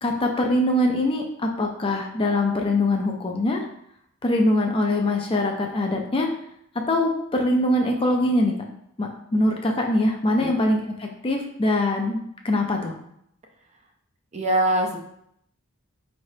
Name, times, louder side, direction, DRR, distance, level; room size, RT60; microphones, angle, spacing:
voice 1, 0.0-3.7 4.2-6.3 6.9-8.6 9.0-12.2 12.4-12.9, left 1 dB, 25° left, 2 dB, 0.4 m, -23 dB
voice 2, 14.3-15.0, right 1 dB, 30° right, 2 dB, 0.5 m, -22 dB
4.8 x 3.3 x 2.7 m, 0.73 s
head